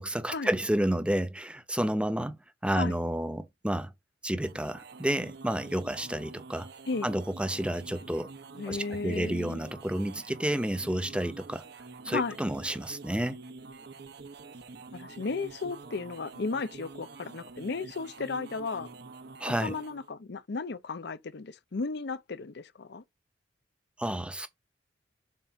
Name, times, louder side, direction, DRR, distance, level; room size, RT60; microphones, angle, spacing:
voice 1, 0.0-2.4 2.6-3.9 4.2-6.7 7.0-8.3 8.7-11.6 12.0-13.4 19.4-19.7 24.0-24.5, right 1 dB, 5° right, 0.7 m, -30 dB
sound 1, 4.3-20.1, right 4 dB, 60° right, 0.8 m, -47 dB
voice 2, 8.6-9.6 12.1-12.4 14.9-18.9 19.4-23.0, left 4 dB, 65° left, 0.6 m, -34 dB
7.4 x 2.5 x 5.7 m
head